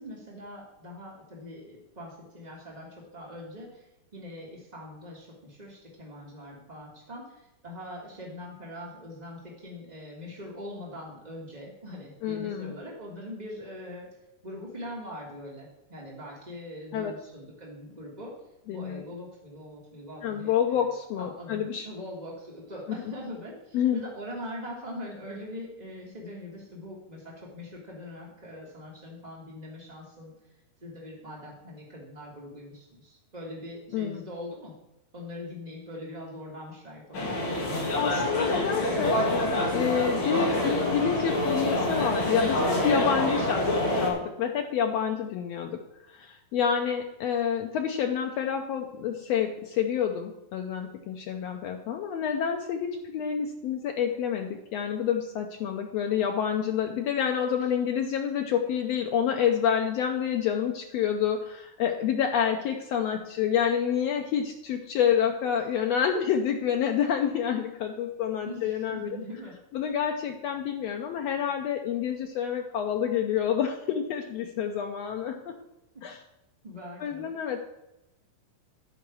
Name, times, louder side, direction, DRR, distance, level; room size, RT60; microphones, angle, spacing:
voice 1, 0.0-3.9 4.1-14.1 14.4-18.3 18.7-30.3 30.8-34.7 35.1-37.6 68.4-69.6 75.9-76.0 76.6-77.3, left 1 dB, 45° right, -3 dB, 0.5 m, -42 dB
voice 2, 12.2-12.7 16.9-17.1 18.7-19.0 20.2-21.9 23.7-24.0 33.9-34.2 38.0-43.7 44.0-45.8 46.1-69.2 69.7-75.4 76.0-76.2 77.0-77.6, left 8 dB, 90° left, 4 dB, 1.4 m, -28 dB
sound 1, 37.1-44.1, left 1 dB, 45° left, 2.3 m, -26 dB
11.0 x 4.8 x 7.0 m, 0.93 s
omnidirectional pair, 3.8 m